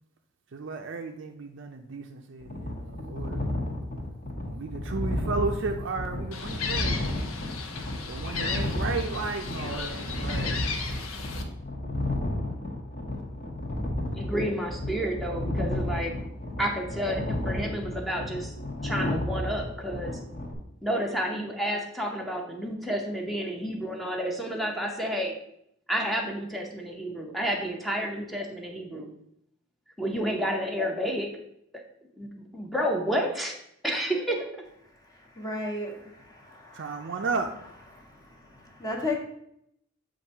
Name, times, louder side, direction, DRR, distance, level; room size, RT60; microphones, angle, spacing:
voice 1, 0.5-3.6 4.4-7.2 8.1-10.6 36.7-37.5, right 4 dB, 60° right, 4 dB, 0.5 m, -34 dB
sound 1, 2.4-20.5, left 1 dB, 40° left, 1.2 m, -32 dB
Gull seagull, 6.3-11.4, left 5 dB, 90° left, 0.8 m, -35 dB
voice 2, 14.1-16.2 16.6-18.5 18.8-20.2 20.8-25.3 25.9-29.1 30.0-31.4 32.2-33.5 33.8-34.5, equal, ahead, 1 dB, 0.7 m, -30 dB
voice 3, 35.4-37.1 37.9-39.2, left 2 dB, 20° left, -2 dB, 1.1 m, -35 dB
7.5 x 2.6 x 5.4 m, 0.74 s
head